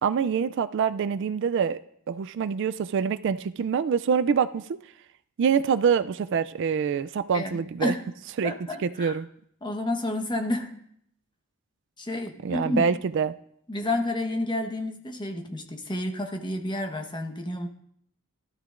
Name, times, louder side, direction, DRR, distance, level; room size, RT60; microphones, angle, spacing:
voice 1, 0.0-1.8 2.1-4.8 5.4-7.9 8.4-8.5 8.8-9.3 12.4-13.3, right 6 dB, 60° right, 13 dB, 0.3 m, -25 dB
voice 2, 7.3-8.0 8.4-9.2 9.6-10.8 12.0-12.9 13.7-17.7, left 1 dB, 20° left, 4 dB, 1.1 m, -30 dB
16.5 x 12.5 x 2.5 m, 0.70 s
head